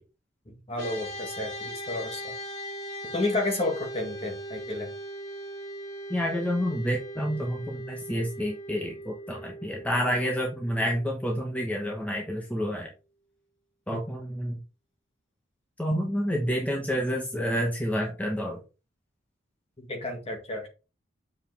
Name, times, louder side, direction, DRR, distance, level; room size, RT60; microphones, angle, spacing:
voice 1, 0.5-2.3 3.1-4.9 13.9-14.0 19.8-20.7, left 2 dB, 30° left, 2.0 m, -31 dB
sound 1, 0.8-12.2, equal, 80° left, 3.5 m, -40 dB
voice 2, 6.1-12.9 13.9-14.6 15.8-18.6, equal, 10° left, 1.2 m, -29 dB
7.4 x 5.5 x 3.5 m
head